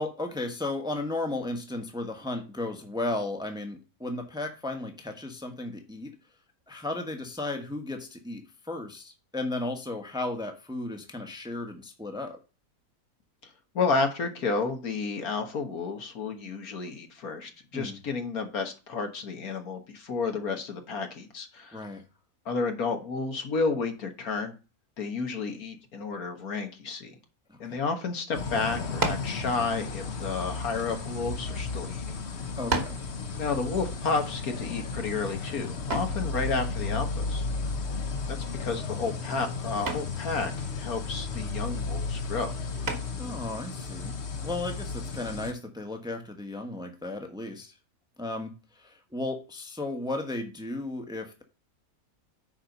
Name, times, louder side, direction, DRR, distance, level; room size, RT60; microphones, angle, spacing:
voice 1, 0.0-6.1 6.7-12.4 17.7-18.0 21.7-22.0 27.5-27.8 32.6-33.0 43.2-44.2 44.4-47.7 48.2-51.4, left 2 dB, 5° right, 4 dB, 1.1 m, -34 dB
voice 2, 13.8-21.8 22.5-24.5 25.0-27.1 27.6-32.2 33.4-37.5 38.3-42.5, left 4 dB, 70° left, 5 dB, 1.9 m, -31 dB
sound 1, 28.3-45.5, left 4 dB, 50° left, 1.1 m, -34 dB
sound 2, 29.0-29.4 30.3-31.5 32.2-32.3 32.7-33.1 35.9-36.2 38.1-38.5 38.9-39.2 39.9-40.2 42.8-43.3, right 3 dB, 45° right, 1.7 m, -32 dB
9.7 x 4.4 x 5.3 m, 0.32 s
omnidirectional pair, 1.6 m